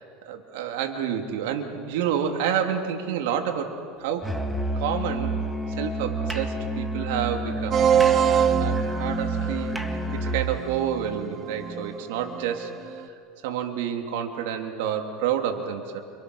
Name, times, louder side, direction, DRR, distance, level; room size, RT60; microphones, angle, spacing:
voice 1, 0.0-4.3 4.7-5.4 5.8-7.8 8.6-9.8 10.1-13.0 13.4-16.0, right 8 dB, 80° right, 4 dB, 2.9 m, -29 dB
Musical instrument, 4.2-10.5, right 1 dB, 5° right, 2.1 m, -29 dB
sound 1, 7.7-13.1, right 9 dB, 40° right, 1.4 m, -25 dB
30.0 x 27.0 x 6.4 m, 2.4 s
supercardioid pair, 120°, 0 cm